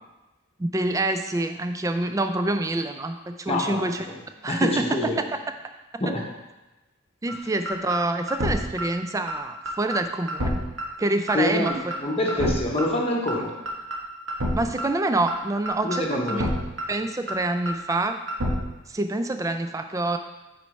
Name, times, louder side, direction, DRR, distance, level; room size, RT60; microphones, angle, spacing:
voice 1, 0.6-4.0 4.4-5.1 7.2-10.6 11.0-11.7 12.4-12.5 14.6-16.5 16.9-18.2 18.9-20.2, right 2 dB, 15° right, 7 dB, 0.3 m, -26 dB
voice 2, 3.5-4.2 4.5-5.2 6.0-6.3 11.3-13.5 15.8-16.5, left 1 dB, 30° left, -1 dB, 0.9 m, -26 dB
sound 1, 7.3-7.4 7.7-8.0 8.3-8.5 8.8-8.9 9.3-9.4 9.7-10.0 10.3-10.5 10.8-10.9 11.3-11.4 11.7-12.0 12.3-12.5 12.8-12.9 13.3-13.4 13.7-14.0 14.3-14.5 14.8-14.9 15.3-15.4 15.7-16.0 16.3-16.5 16.8-16.9 17.3-17.4 17.7-18.0 18.3-18.5, equal, 70° right, 1.3 m, -27 dB
6.2 x 4.5 x 5.3 m, 1.1 s
head